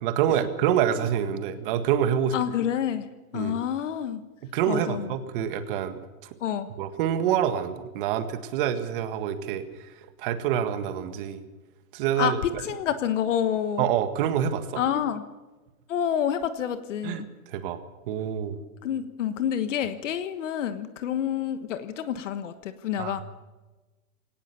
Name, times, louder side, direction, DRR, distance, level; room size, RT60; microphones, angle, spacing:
voice 1, 0.0-2.4 3.3-3.6 4.5-6.4 6.8-11.4 11.9-12.6 13.8-14.8 17.0-17.8 18.1-18.6 23.0-23.2, right 9 dB, 35° right, 9 dB, 1.8 m, -27 dB
voice 2, 2.3-3.1 3.3-4.2 4.7-5.1 6.4-6.7 12.2-12.3 12.6-13.8 14.8-15.2 15.9-17.2 18.8-23.2, left 9 dB, 55° left, 10 dB, 1.4 m, -28 dB
22.5 x 18.0 x 7.0 m, 1.2 s
hypercardioid pair, 160°, 43 cm